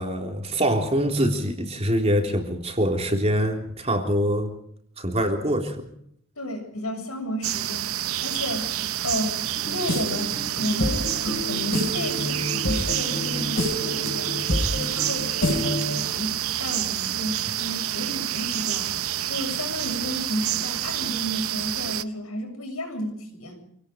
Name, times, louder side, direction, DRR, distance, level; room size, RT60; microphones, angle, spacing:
voice 1, 0.0-4.5 5.0-5.8, equal, 30° right, 3 dB, 3.4 m, -24 dB
voice 2, 6.4-8.7 9.0-14.4 14.8-18.9 19.3-23.6, equal, 85° left, 4 dB, 7.2 m, -32 dB
sound 1, 7.4-22.0, right 12 dB, 75° right, 0.8 m, -28 dB
sound 2, 9.5-16.1, left 1 dB, 60° left, 6.1 m, -28 dB
27.0 x 18.5 x 5.2 m, 0.69 s
head